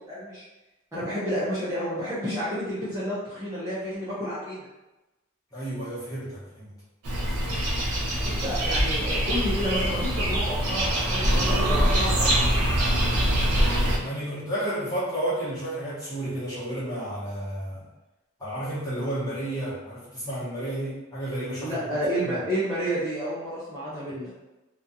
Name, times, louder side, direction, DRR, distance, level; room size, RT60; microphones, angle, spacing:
voice 1, 0.1-0.4 0.9-4.7 8.2-12.8 21.6-24.3, equal, 15° right, -12 dB, 0.5 m, -30 dB
voice 2, 5.5-6.7 14.0-17.9 18.4-21.8 22.2-22.4 24.1-24.2, right 1 dB, 15° left, -11 dB, 1.0 m, -32 dB
sound 1, 7.0-14.0, equal, 90° right, 0.7 m, -24 dB
2.4 x 2.3 x 2.6 m, 1.0 s
head